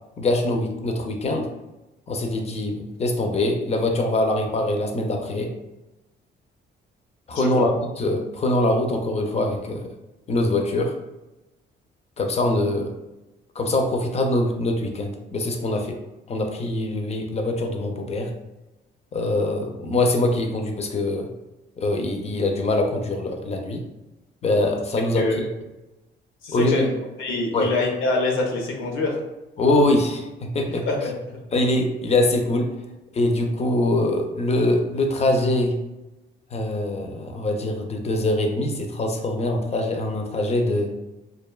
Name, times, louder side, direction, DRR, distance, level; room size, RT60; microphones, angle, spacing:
voice 1, 0.2-1.5 2.1-5.5 7.3-9.8 10.3-10.9 12.2-12.9 13.6-16.0 16.3-18.3 19.1-21.3 21.8-23.8 24.4-25.5 26.5-26.9 27.5-27.7 29.6-30.3 30.5-30.9 31.5-32.8 33.1-35.8 36.5-40.9, left 1 dB, 35° left, 4 dB, 0.4 m, -23 dB
voice 2, 7.3-7.7 25.1-25.5 26.4-26.9 27.2-29.2 30.7-31.4, left 3 dB, 85° left, 1 dB, 0.6 m, -25 dB
2.5 x 2.1 x 2.2 m, 1.0 s
cardioid pair, 90°, 20 cm